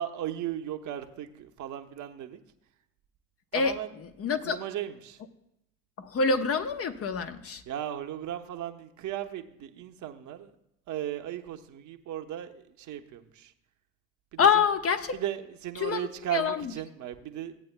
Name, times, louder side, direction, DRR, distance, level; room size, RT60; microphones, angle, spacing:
voice 1, 0.0-2.4 3.5-3.9 4.4-5.2 7.7-10.5 10.9-13.5 14.3-14.6 15.1-17.5, right 11 dB, 50° right, 1.0 m, -36 dB
voice 2, 3.5-4.6 6.0-7.6 14.4-15.2 15.8-16.7, left 5 dB, 35° left, 0.9 m, -27 dB
16.5 x 8.6 x 2.2 m
hypercardioid pair, 65°, 39 cm